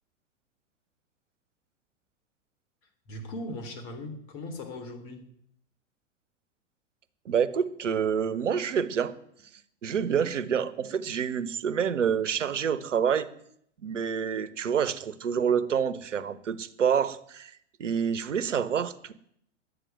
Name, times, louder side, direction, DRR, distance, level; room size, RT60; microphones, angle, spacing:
voice 1, 3.1-5.3, left 1 dB, 45° left, 3.5 m, -39 dB
voice 2, 7.3-9.1 9.8-13.3 13.8-17.5 17.8-19.1, right 7 dB, 80° right, 1.1 m, -27 dB
11.5 x 9.2 x 9.2 m
hypercardioid pair, 100°, 37 cm